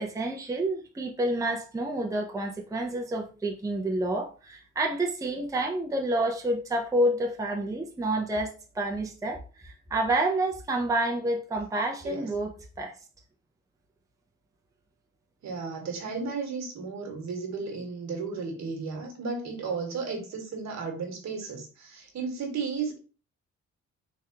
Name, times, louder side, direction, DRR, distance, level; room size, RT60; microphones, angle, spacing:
voice 1, 0.0-13.0, right 1 dB, 10° right, 0.6 m, -29 dB
voice 2, 15.4-23.0, right 4 dB, 65° right, 1.3 m, -34 dB
3.5 x 3.2 x 2.8 m
cardioid pair, 90°, 30 cm